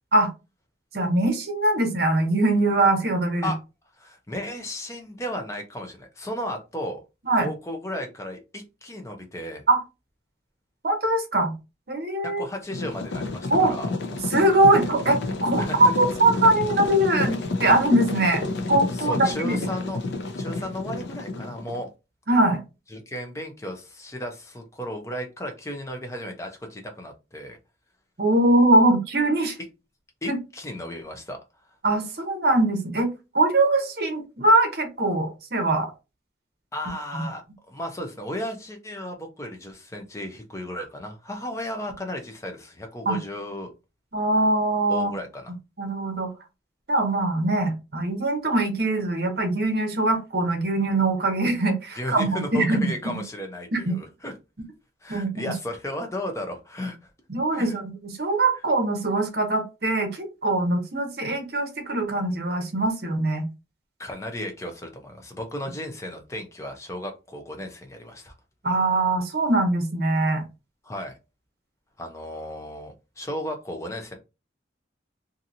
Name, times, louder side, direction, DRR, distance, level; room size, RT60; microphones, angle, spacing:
voice 1, 0.9-3.5 7.2-7.5 9.7-9.8 10.8-11.5 11.9-12.4 13.5-13.7 14.3-19.6 22.3-22.6 28.2-29.6 30.3-30.4 31.8-33.1 33.3-35.9 37.1-37.2 43.1-43.2 44.1-45.1 45.8-46.3 46.9-52.9 53.7-54.0 55.1-55.4 57.3-63.4 68.6-70.4, right 2 dB, 55° right, 5 dB, 0.8 m, -22 dB
voice 2, 4.0-7.0 7.4-9.6 12.2-13.9 15.6-15.9 18.9-20.0 20.4-21.9 22.9-27.6 30.2-31.4 36.7-43.7 44.9-45.5 51.9-54.3 55.0-57.0 57.5-57.8 64.0-68.3 70.8-71.1 72.0-74.1, left 1 dB, 15° left, 4 dB, 0.5 m, -34 dB
sound 1, 12.7-21.8, left 3 dB, 70° left, 0.5 m, -30 dB
2.8 x 2.6 x 2.6 m, 0.27 s
head